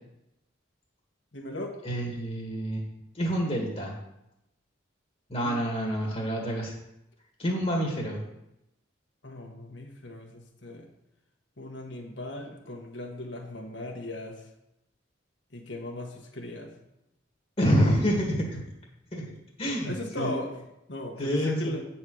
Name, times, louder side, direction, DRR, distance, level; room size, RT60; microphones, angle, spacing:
voice 1, 1.3-1.7 5.4-5.6 9.2-10.9 11.6-14.5 15.5-16.7 19.8-20.5 20.9-21.9, left 1 dB, 65° left, 2 dB, 1.4 m, -38 dB
voice 2, 1.8-2.8 3.2-3.9 5.3-6.7 7.4-8.2 17.6-18.6 19.1-19.2 19.6-20.3 21.2-21.7, equal, 30° left, -1 dB, 1.7 m, -27 dB
8.6 x 4.3 x 6.3 m, 0.87 s
head